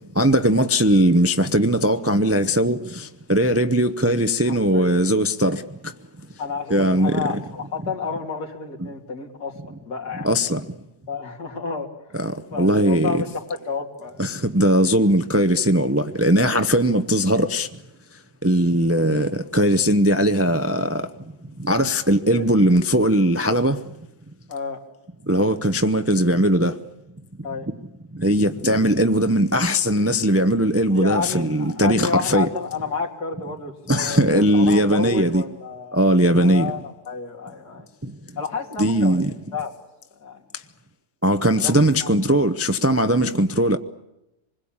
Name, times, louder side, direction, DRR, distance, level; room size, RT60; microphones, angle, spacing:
voice 1, 0.2-5.6 6.7-7.2 10.2-10.6 12.1-13.2 14.2-17.7 18.4-21.1 21.6-23.8 25.3-26.7 28.2-32.5 33.9-35.4 35.9-36.7 38.8-39.3 41.2-43.8, equal, 15° right, 0.5 m, -19 dB
voice 2, 4.5-5.0 6.4-10.3 11.1-11.9 12.5-14.3 22.3-22.5 24.5-24.8 27.4-27.7 30.9-36.0 36.4-37.9 38.4-39.2 39.5-39.7 40.2-40.4 41.6-42.1, left 4 dB, 80° left, 3.4 m, -30 dB
26.5 x 21.0 x 8.8 m
omnidirectional pair, 1.7 m